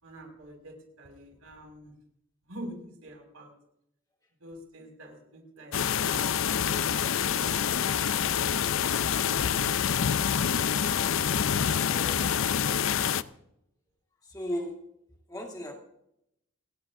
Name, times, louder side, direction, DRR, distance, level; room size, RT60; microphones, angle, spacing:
voice 1, 0.0-1.9 2.5-3.5 4.4-6.3 6.7-7.8, right 1 dB, 85° right, 0 dB, 5.6 m, -46 dB
sound 1, 5.7-13.2, left 8 dB, 65° left, 0.5 m, -26 dB
voice 2, 11.7-12.3 14.2-14.8 15.3-15.7, equal, 15° left, 0 dB, 2.1 m, -37 dB
28.0 x 10.5 x 3.7 m, 0.80 s
head